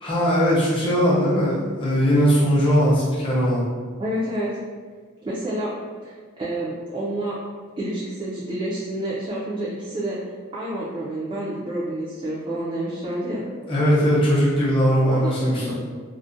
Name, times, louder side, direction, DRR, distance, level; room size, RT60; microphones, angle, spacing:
voice 1, 0.0-3.6 13.7-15.7, equal, 25° left, -8 dB, 0.6 m, -19 dB
voice 2, 4.0-4.5 5.2-5.7 6.0-7.4 7.8-10.2 10.5-13.5 15.0-15.7, right 1 dB, 25° right, -8 dB, 0.3 m, -29 dB
2.4 x 2.0 x 2.5 m, 1.5 s
head